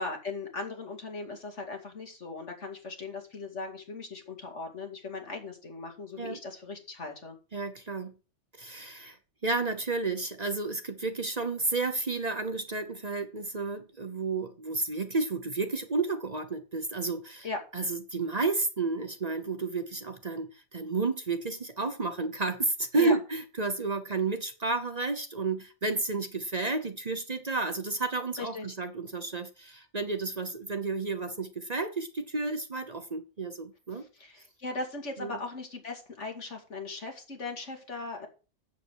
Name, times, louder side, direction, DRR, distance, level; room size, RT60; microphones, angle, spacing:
voice 1, 0.0-7.4 17.4-17.6 22.9-23.2 28.4-28.7 33.9-38.3, left 3 dB, 70° left, 2.8 m, -38 dB
voice 2, 7.5-8.2 8.6-9.2 9.4-17.5 17.7-34.1 35.2-35.4, right 3 dB, 35° right, 1.0 m, -31 dB
8.2 x 7.7 x 6.3 m
omnidirectional pair, 1.2 m